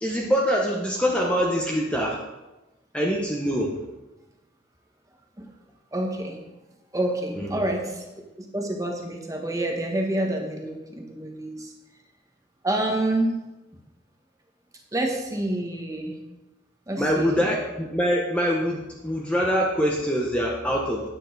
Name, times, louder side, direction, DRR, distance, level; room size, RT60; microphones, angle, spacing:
voice 1, 0.0-2.2 2.9-3.7 7.4-7.7 17.0-21.1, equal, 5° left, -2 dB, 0.9 m, -24 dB
voice 2, 5.9-6.4 6.9-8.0 8.4-11.7 12.6-13.3 14.9-16.2 16.9-17.5, right 1 dB, 15° right, 1 dB, 1.2 m, -28 dB
9.2 x 8.4 x 4.0 m, 1.1 s
head